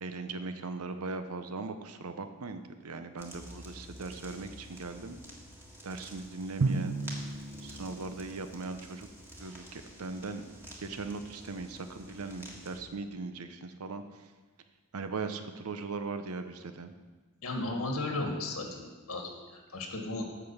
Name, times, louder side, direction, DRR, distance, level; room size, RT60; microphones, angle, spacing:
voice 1, 0.0-5.2 5.8-7.0 7.6-9.1 9.4-10.4 10.8-14.0 14.9-16.9, right 3 dB, 90° right, 9 dB, 0.8 m, -39 dB
sound 1, 3.2-12.8, equal, 10° right, 1.6 m, -49 dB
Drum, 6.6-8.8, right 3 dB, 65° right, 0.4 m, -34 dB
voice 2, 17.4-20.2, left 2 dB, 75° left, 2 dB, 1.7 m, -35 dB
8.4 x 6.0 x 7.1 m, 1.3 s
head